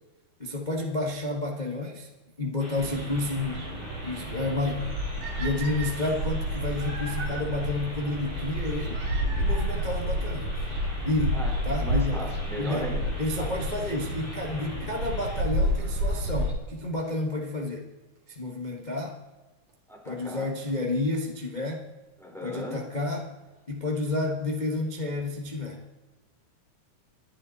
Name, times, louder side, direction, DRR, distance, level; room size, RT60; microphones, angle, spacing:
voice 1, 0.4-2.1 2.4-3.6 4.0-4.9 5.4-9.0 9.4-10.5 11.1-11.4 11.6-12.2 12.6-12.9 13.2-17.9 18.3-19.2 20.0-21.8 22.4-23.3 23.7-25.8, left 2 dB, 70° left, 0 dB, 0.4 m, -30 dB
sound 1, 2.6-15.4, left 1 dB, 15° left, 3.2 m, -43 dB
sound 2, 2.8-16.5, equal, 75° right, 4.7 m, -30 dB
sound 3, 5.2-7.4 8.9-9.9 10.9-11.0 11.7-11.8 12.0-12.1 13.9-14.2 17.0-17.1 18.2-18.3 19.7-19.8 20.1-20.2 20.4-20.5 20.7-20.8 21.0-21.1 21.2-21.3 21.5-21.6, right 4 dB, 55° right, 4.2 m, -40 dB
voice 2, 11.3-13.5 19.9-20.5 22.2-22.9, equal, ahead, -1 dB, 3.9 m, -38 dB
28.5 x 10.5 x 4.1 m, 1.2 s
omnidirectional pair, 3.6 m